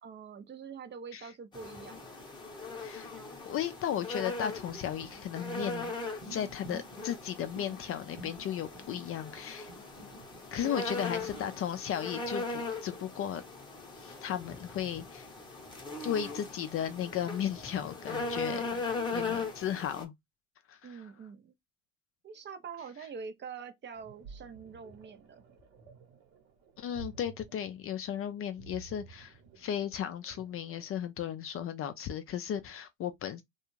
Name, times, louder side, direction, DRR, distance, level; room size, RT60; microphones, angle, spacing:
voice 1, 0.0-2.1 10.6-11.1 20.8-21.5 22.2-25.6, right 6 dB, 30° right, 0.5 m, -45 dB
sound 1, 1.5-20.0, left 3 dB, 10° left, 0.8 m, -39 dB
voice 2, 2.8-3.1 3.4-5.9 6.2-9.7 10.5-13.4 14.0-15.3 16.0-18.8 19.1-20.1 20.7-21.0 26.8-33.4, left 9 dB, 40° left, 0.4 m, -35 dB
viscious liquid gurgling, 4.6-11.4, right 2 dB, 45° right, 1.0 m, -50 dB
sound 2, 23.9-30.9, right 7 dB, 70° right, 1.0 m, -53 dB
2.3 x 2.3 x 3.0 m
hypercardioid pair, 75°, 36 cm